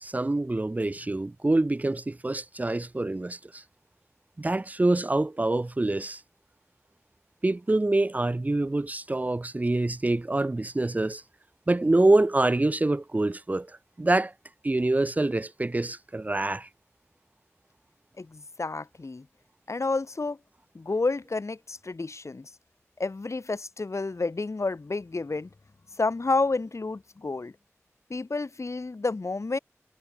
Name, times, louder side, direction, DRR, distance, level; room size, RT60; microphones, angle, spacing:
voice 1, 0.0-3.6 4.4-6.2 7.4-11.2 11.7-13.7 14.0-14.3 14.6-16.7, right 2 dB, 30° right, 0.4 m, -25 dB
voice 2, 18.2-19.3 19.7-20.4 20.7-22.5 23.0-25.5 26.0-27.5 28.1-29.6, left 3 dB, 70° left, 2.3 m, -30 dB
wide cardioid pair, 45°, 5 cm